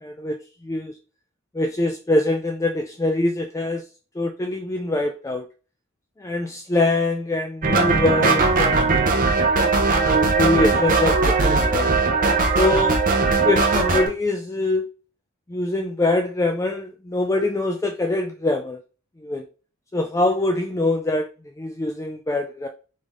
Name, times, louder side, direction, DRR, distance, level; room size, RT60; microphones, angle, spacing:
voice 1, 0.0-1.0 1.5-3.8 4.2-5.5 6.2-9.0 9.9-11.9 12.5-13.0 13.4-14.9 15.5-18.8 19.2-19.4 19.9-21.3 21.6-22.7, left 2 dB, 15° left, 5 dB, 0.3 m, -24 dB
sound 1, 7.6-14.1, right 3 dB, 40° right, 0.9 m, -19 dB
3.9 x 3.4 x 3.6 m, 0.36 s
head